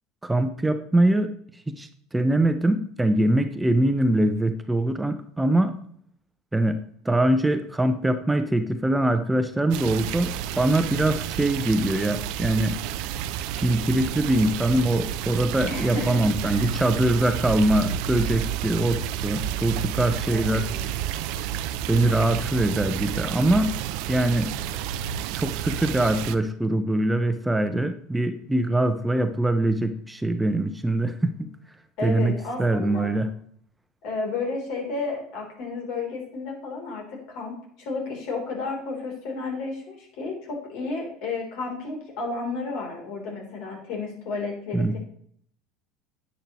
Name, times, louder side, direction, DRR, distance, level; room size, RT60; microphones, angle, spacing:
voice 1, 0.2-1.3 1.7-5.8 6.5-6.8 7.0-12.8 13.6-20.7 21.9-23.7 24.1-24.5 25.3-31.5 32.0-33.3 44.7-45.0, right 1 dB, 10° right, 8 dB, 0.8 m, -23 dB
sound 1, 9.7-26.4, right 10 dB, 65° right, 0.6 m, -30 dB
voice 2, 15.7-16.7 20.3-20.9 32.0-33.1 34.0-45.0, left 3 dB, 65° left, 1 dB, 3.6 m, -32 dB
10.0 x 8.6 x 3.1 m, 0.63 s
hypercardioid pair, 75°, 0 cm